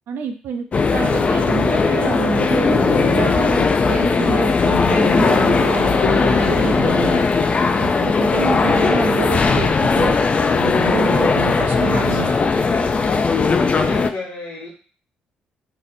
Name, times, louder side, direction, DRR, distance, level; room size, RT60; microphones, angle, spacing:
voice 1, 0.1-7.2 7.8-10.2 10.6-12.3, right 7 dB, 70° right, 7 dB, 0.4 m, -27 dB
sound 1, 0.7-14.1, left 4 dB, 40° left, 0.3 m, -18 dB
Zipper (clothing), 2.6-10.2 10.5-10.6, left 1 dB, 10° left, 0.7 m, -36 dB
voice 2, 8.4-9.0 11.6-13.3 13.8-14.7, left 3 dB, 55° left, -2 dB, 1.1 m, -31 dB
2.7 x 2.1 x 4.0 m, 0.41 s
supercardioid pair, 55°, 4 cm